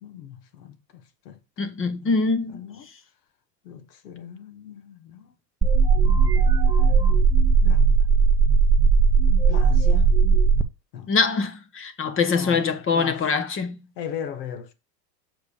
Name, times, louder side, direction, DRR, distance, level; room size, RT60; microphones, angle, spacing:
voice 1, 0.0-2.1 2.5-2.8 3.6-5.3 6.3-7.0 7.6-7.8 9.5-10.1 10.9-11.1 12.3-12.6 12.9-13.2 14.0-14.7, left 8 dB, 75° left, 1.6 m, -38 dB
voice 2, 1.6-2.6 11.1-13.8, left 4 dB, 25° left, 1.2 m, -23 dB
sound 1, 5.6-10.6, right 5 dB, 10° right, 0.5 m, -17 dB
6.9 x 4.8 x 5.0 m
hypercardioid pair, 110°, 49 cm